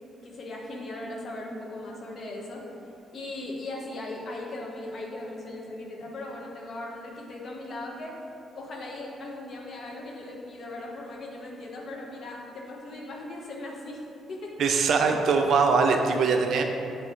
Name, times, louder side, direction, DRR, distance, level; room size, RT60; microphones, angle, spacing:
voice 1, 0.2-2.7 3.1-8.2 8.5-14.0 14.3-14.5 15.1-15.2, left 2 dB, 55° left, -1 dB, 1.2 m, -38 dB
voice 2, 14.6-16.6, right 5 dB, 70° right, 4 dB, 0.6 m, -22 dB
8.2 x 3.2 x 4.6 m, 2.7 s
cardioid pair, 90°, 0 cm